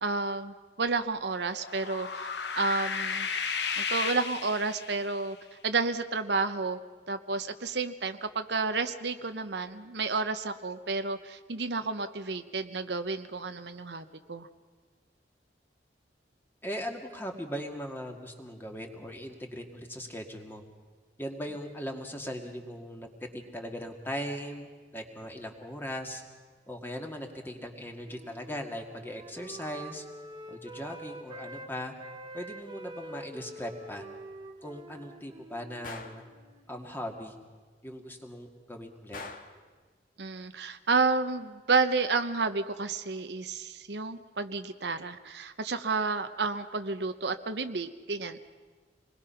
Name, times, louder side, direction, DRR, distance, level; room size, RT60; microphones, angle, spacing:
voice 1, 0.0-2.3 2.5-3.3 3.8-5.4 5.6-6.8 7.1-14.5 40.2-48.5, right 4 dB, 70° right, 9 dB, 0.9 m, -31 dB
sound 1, 1.4-5.2, left 6 dB, 75° left, 1.2 m, -34 dB
voice 2, 16.6-20.6 21.2-26.2 26.7-30.0 30.5-31.9 32.3-34.1 34.6-36.2 36.7-37.4 37.8-39.2, equal, 10° left, 3 dB, 2.0 m, -39 dB
Wind instrument woodwind instrument, 26.8-31.7 32.0-37.3, right 1 dB, 25° right, 1.3 m, -47 dB
Gunshot gunfire, 35.8-36.3 39.1-39.6, left 3 dB, 55° left, 1.6 m, -42 dB
27.0 x 21.0 x 5.8 m, 1.4 s
head